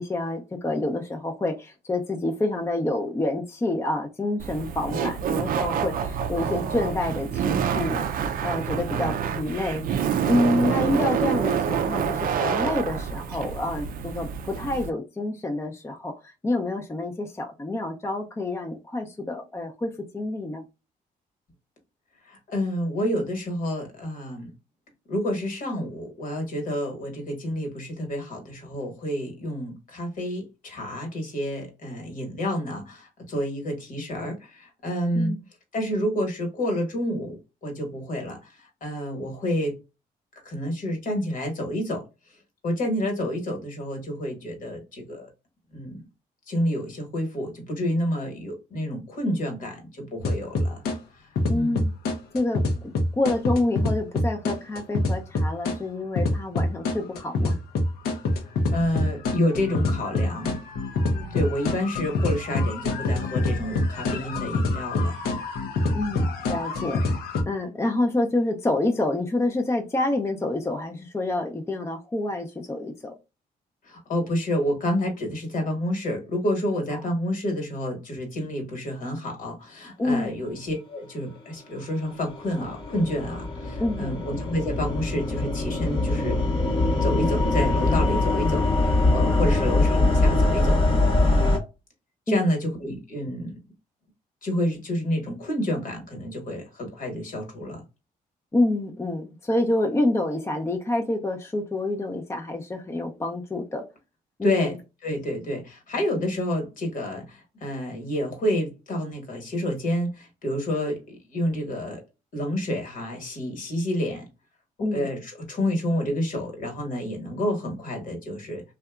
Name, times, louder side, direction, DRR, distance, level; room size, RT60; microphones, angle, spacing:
voice 1, 0.0-8.0 8.4-9.8 10.3-20.6 35.1-35.4 51.5-51.9 52.3-52.6 53.2-57.6 61.1-61.4 65.9-67.0 67.5-73.1 76.9-77.0 80.0-80.4 83.8-84.2 89.3-89.7 92.3-92.5 98.5-103.8 104.4-104.7 106.2-106.3 114.8-115.1, left 2 dB, 15° left, 0.5 m, -27 dB
Laughter, 4.4-14.9, right 7 dB, 65° right, 0.4 m, -27 dB
voice 2, 22.3-24.5 25.1-35.3 35.7-38.4 38.8-39.8 40.4-42.0 42.6-45.3 45.7-46.0 46.5-50.8 51.5-51.8 58.7-60.6 61.3-65.1 65.8-66.1 73.8-86.4 87.0-90.8 91.3-91.5 92.3-93.6 94.4-97.8 104.4-104.7 105.0-112.0 112.3-114.3 114.9-118.6, equal, 60° left, 1.2 m, -29 dB
sound 1, 50.2-51.0 51.3-55.8 56.2-67.4, left 2 dB, 80° left, 0.6 m, -26 dB
sound 2, 81.9-91.6, left 2 dB, 35° left, 0.9 m, -23 dB
2.7 x 2.2 x 2.3 m
cardioid pair, 75°, 16 cm